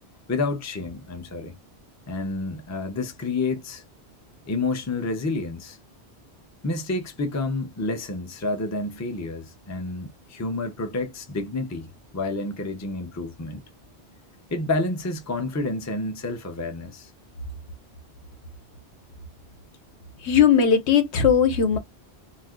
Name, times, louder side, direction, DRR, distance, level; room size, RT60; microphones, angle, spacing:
voice 1, 0.3-1.5 2.1-3.8 4.5-5.8 6.6-13.6 14.5-17.1, left 3 dB, 20° left, 0.4 m, -29 dB
voice 2, 20.2-21.8, left 7 dB, 80° left, 1.0 m, -18 dB
2.7 x 2.4 x 3.6 m
omnidirectional pair, 1.1 m